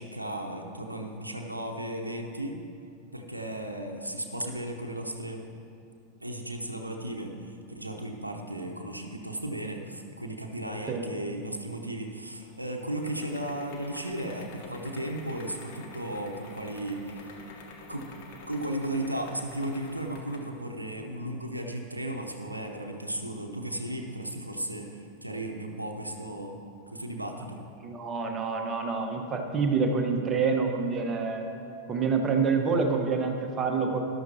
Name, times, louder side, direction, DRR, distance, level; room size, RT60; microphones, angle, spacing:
voice 1, 0.0-2.6 3.1-5.4 6.2-17.3 17.9-18.1 18.5-26.6 26.9-27.6, right 1 dB, 85° right, 3 dB, 0.7 m, -35 dB
sound 1, 11.8-20.6, left 3 dB, 45° left, 1.3 m, -47 dB
voice 2, 27.8-31.5 31.9-34.0, right 5 dB, 25° right, 3 dB, 1.1 m, -27 dB
13.5 x 11.0 x 2.8 m, 2.6 s
figure-of-eight pair, 90°, 0 cm